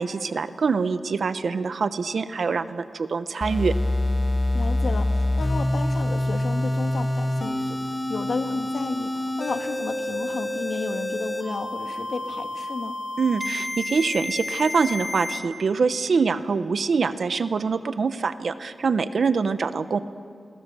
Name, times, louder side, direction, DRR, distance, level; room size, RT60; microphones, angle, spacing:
voice 1, 0.0-3.7 13.2-20.0, right 5 dB, 70° right, 12 dB, 0.9 m, -24 dB
sound 1, 3.4-15.4, left 1 dB, 20° left, 4.3 m, -27 dB
voice 2, 4.5-13.0, left 4 dB, 75° left, 7 dB, 1.6 m, -33 dB
29.0 x 21.5 x 6.9 m, 2.4 s
cardioid pair, 70°, 0 cm